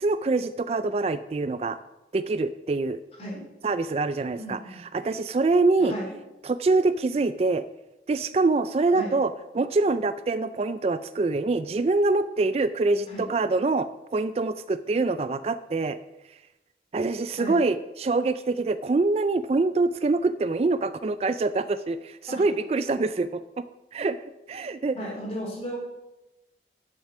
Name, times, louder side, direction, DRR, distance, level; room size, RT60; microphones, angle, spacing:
voice 1, 0.0-1.8 2.1-3.0 3.6-5.9 6.4-7.6 8.1-16.0 16.9-23.6 23.9-24.2 24.5-25.0, right 3 dB, 35° right, 12 dB, 0.3 m, -25 dB
voice 2, 4.4-4.8 5.8-6.1 8.9-9.1 13.1-13.3 17.4-17.6 22.3-22.4 24.9-25.8, equal, 35° left, -3 dB, 3.8 m, -35 dB
11.0 x 7.3 x 6.0 m, 0.98 s
head